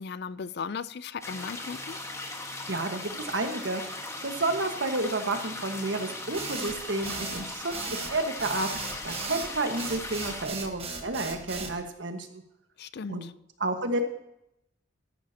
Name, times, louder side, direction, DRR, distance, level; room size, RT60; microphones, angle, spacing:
voice 1, 0.0-2.0 12.8-13.3, left 5 dB, 60° left, 16 dB, 0.5 m, -37 dB
sound 1, 1.2-10.5, left 2 dB, 15° left, 1.4 m, -38 dB
voice 2, 2.7-4.0 4.2-7.7 8.1-12.4 13.1-13.2 13.6-14.0, right 2 dB, 75° right, 6 dB, 1.5 m, -31 dB
sound 2, 6.3-11.8, right 4 dB, 35° right, 1.4 m, -36 dB
14.0 x 11.0 x 2.9 m, 0.82 s
head